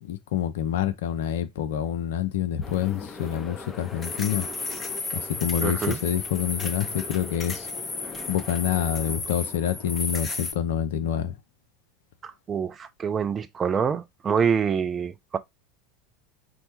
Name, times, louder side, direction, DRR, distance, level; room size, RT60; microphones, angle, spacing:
voice 1, 0.0-4.5 5.1-7.7 8.3-11.3, left 10 dB, 65° left, 0.4 m, -27 dB
sound 1, 2.6-10.5, left 3 dB, 25° left, 0.7 m, -34 dB
voice 2, 5.6-6.0 12.2-15.4, right 6 dB, 30° right, 0.4 m, -26 dB
4.3 x 2.1 x 2.9 m
figure-of-eight pair, 80°, 0 cm